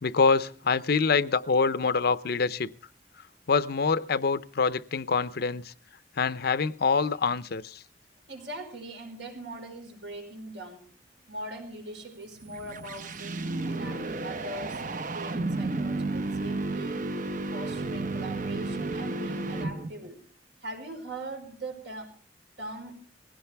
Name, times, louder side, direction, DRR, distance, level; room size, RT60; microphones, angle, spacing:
voice 1, 0.0-2.7 3.5-5.7 6.2-7.8, left 4 dB, 60° left, 0.6 m, -25 dB
voice 2, 8.3-10.9 11.3-17.0 17.5-20.2 20.6-22.1 22.6-23.0, right 1 dB, 80° right, 4.9 m, -41 dB
sound 1, 12.3-20.1, right 2 dB, 45° right, 0.8 m, -32 dB
19.5 x 16.5 x 3.4 m
head